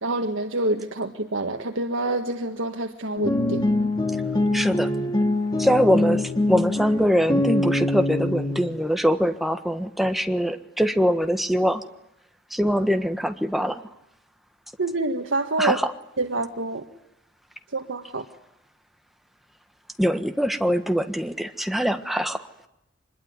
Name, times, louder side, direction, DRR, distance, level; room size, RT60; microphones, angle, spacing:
voice 1, 0.0-3.6 14.8-15.8 16.2-16.8 17.7-18.2, right 2 dB, 75° right, 5 dB, 1.6 m, -27 dB
sound 1, 3.2-8.6, left 2 dB, 20° left, 3.6 m, -24 dB
voice 2, 4.5-4.9 5.6-11.8 12.5-13.8 15.6-15.8 20.0-22.4, equal, ahead, 7 dB, 1.4 m, -23 dB
25.0 x 21.5 x 9.6 m, 0.84 s
head